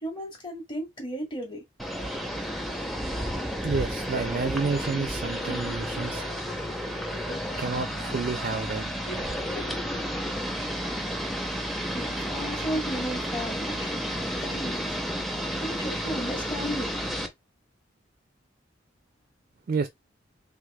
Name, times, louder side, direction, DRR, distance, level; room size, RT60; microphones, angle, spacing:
voice 1, 0.0-1.6 11.9-14.1 14.4-14.9 15.6-16.9, equal, 25° left, 1.4 m, -34 dB
sound 1, 1.8-17.3, equal, ahead, 0.6 m, -32 dB
Subway metro underground, 3.2-10.0, left 2 dB, 70° left, 0.8 m, -45 dB
voice 2, 3.6-6.2 7.6-8.9 19.7-19.9, right 4 dB, 50° right, 0.4 m, -29 dB
3.3 x 3.3 x 2.3 m
head